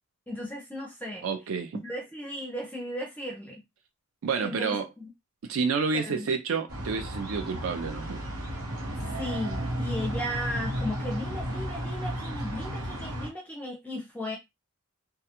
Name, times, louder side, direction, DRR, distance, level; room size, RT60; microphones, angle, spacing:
voice 1, 0.3-1.3 1.7-3.6 4.4-5.1 5.9-6.3 9.2-14.4, left 1 dB, 5° left, 0.4 m, -36 dB
voice 2, 1.2-1.8 4.2-4.9 5.5-8.2, right 5 dB, 65° right, 0.4 m, -29 dB
sound 1, 6.7-13.3, equal, 80° right, 0.9 m, -33 dB
2.3 x 2.3 x 2.8 m
head